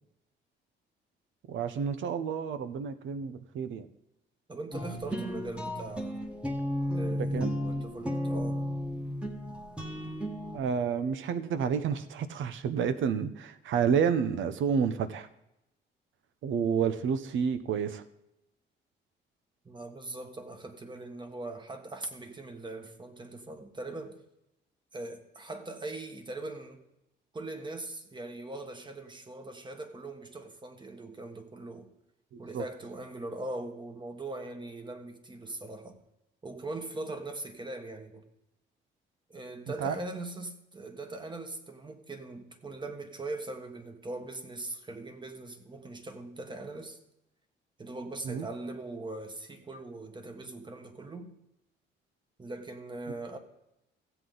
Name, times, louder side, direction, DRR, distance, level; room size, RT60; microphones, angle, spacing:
voice 1, 1.5-3.9 7.3-7.5 10.5-15.3 16.4-18.0 32.3-32.6 39.8-39.9 48.2-48.5, right 7 dB, 75° right, 0.8 m, -30 dB
voice 2, 4.5-6.2 6.9-8.6 19.6-24.2 24.9-26.9 27.3-31.9 32.4-36.0 36.4-38.3 39.3-47.0 47.8-51.3 52.4-53.4, right 2 dB, 25° right, 1.5 m, -41 dB
sound 1, 4.7-10.6, equal, 5° right, 1.5 m, -33 dB
16.0 x 7.9 x 3.9 m
cardioid pair, 90°, 20 cm